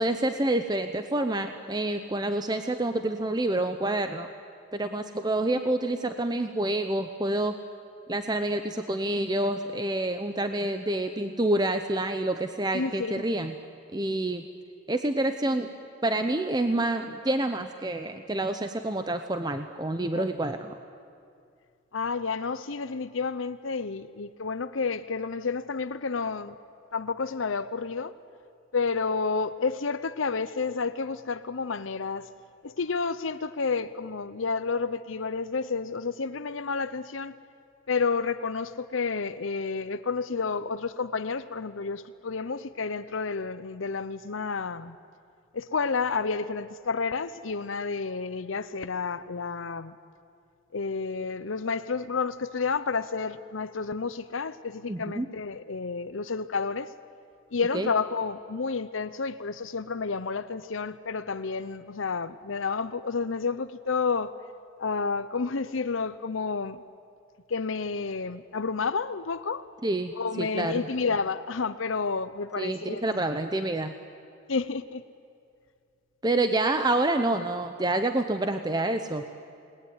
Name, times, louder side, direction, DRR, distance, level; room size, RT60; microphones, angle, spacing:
voice 1, 0.0-4.3 4.7-7.6 8.1-13.6 13.9-14.5 14.9-15.7 16.0-20.8 54.9-55.3 57.7-57.9 69.8-70.9 72.6-73.9 76.2-79.2, right 1 dB, 20° right, 0.8 m, -28 dB
voice 2, 12.7-13.2 20.1-20.3 21.9-26.5 26.9-28.1 28.7-32.3 32.6-37.3 37.9-45.0 45.5-50.0 50.7-56.9 57.5-64.3 64.8-66.8 67.5-69.6 70.1-73.1 74.5-75.0, left 4 dB, 90° left, 0.8 m, -30 dB
28.0 x 19.5 x 9.7 m
head